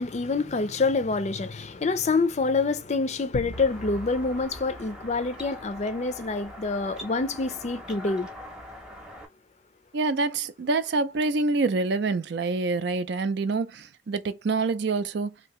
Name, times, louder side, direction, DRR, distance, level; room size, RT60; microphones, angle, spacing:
voice 1, 0.0-8.3, left 3 dB, 40° left, 0.4 m, -27 dB
sound 1, 3.3-6.2, left 3 dB, 85° left, 0.6 m, -41 dB
sound 2, 3.5-9.3, left 1 dB, 5° right, 0.7 m, -43 dB
voice 2, 9.9-15.3, right 3 dB, 65° right, 0.4 m, -26 dB
2.8 x 2.7 x 3.0 m
head